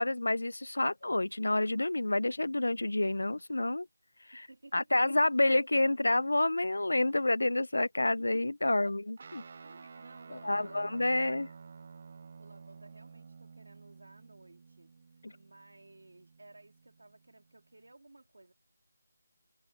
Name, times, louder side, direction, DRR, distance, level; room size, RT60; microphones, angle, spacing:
voice 1, 0.0-3.9 4.3-4.5 4.7-9.4 10.3-11.5 15.2-15.3, left 2 dB, 85° left, 0.4 m, -29 dB
voice 2, 4.3-5.2 8.6-9.0 9.6-11.4 12.4-18.5, right 2 dB, 75° right, 2.6 m, -57 dB
Guitar, 9.2-17.9, right 5 dB, 25° right, 0.4 m, -52 dB
figure-of-eight pair, 175°, 0 cm